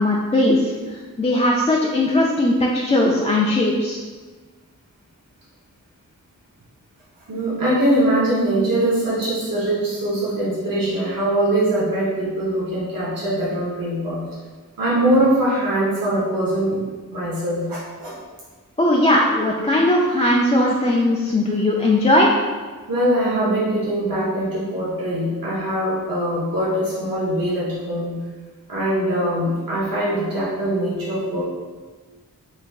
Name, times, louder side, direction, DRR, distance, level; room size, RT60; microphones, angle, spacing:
voice 1, 0.0-4.0 18.8-22.3, left 1 dB, 20° left, -3 dB, 0.3 m, -18 dB
voice 2, 7.3-14.2 14.8-16.8 17.1-18.1 22.9-28.2 28.7-31.4, right 1 dB, 75° right, -8 dB, 1.0 m, -22 dB
4.6 x 3.4 x 2.3 m, 1.4 s
wide cardioid pair, 75°, 34 cm